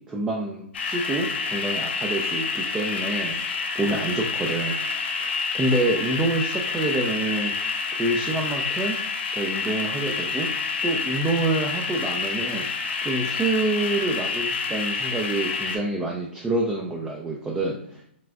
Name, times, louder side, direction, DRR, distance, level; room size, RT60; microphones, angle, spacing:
voice 1, 0.1-4.8 5.2-7.5 7.9-9.0 9.3-10.5 10.8-12.6 13.0-18.1, right 2 dB, 10° right, -1 dB, 0.4 m, -27 dB
sound 1, 0.7-15.8, left 5 dB, 60° left, 0.7 m, -28 dB
5.6 x 2.4 x 2.4 m, 0.73 s
hypercardioid pair, 125°, 7 cm